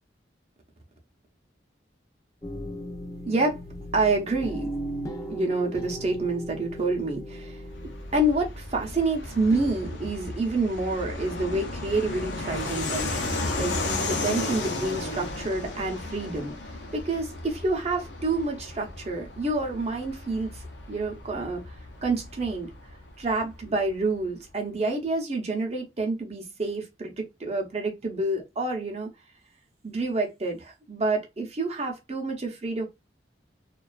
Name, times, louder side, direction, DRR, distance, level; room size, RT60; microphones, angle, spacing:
sound 1, 2.4-9.7, equal, 20° left, 0.4 m, -37 dB
voice 1, 3.2-3.6 3.9-4.7 5.3-7.6 8.1-13.7 14.0-16.5 16.9-21.8 22.0-22.7 23.2-29.1 29.8-32.9, right 2 dB, 35° right, 0.6 m, -28 dB
Fixed-wing aircraft airplane, 7.7-23.9, left 2 dB, 80° left, 0.6 m, -34 dB
2.4 x 2.3 x 2.2 m
head